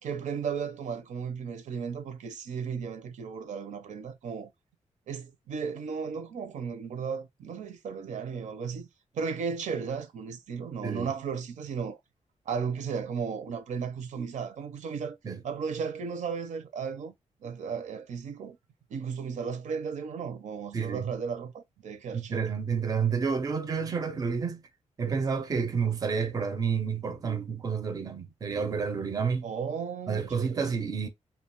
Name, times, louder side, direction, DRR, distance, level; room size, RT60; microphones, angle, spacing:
voice 1, 0.0-4.5 5.1-8.9 9.1-12.0 12.5-15.2 15.4-17.1 17.4-18.6 18.9-22.4 29.4-30.8, right 6 dB, 75° right, 0.6 m, -35 dB
voice 2, 20.7-21.1 22.1-24.6 25.0-29.5 30.1-31.1, right 6 dB, 30° right, 0.5 m, -30 dB
2.7 x 2.2 x 2.9 m
wide cardioid pair, 145°, 13 cm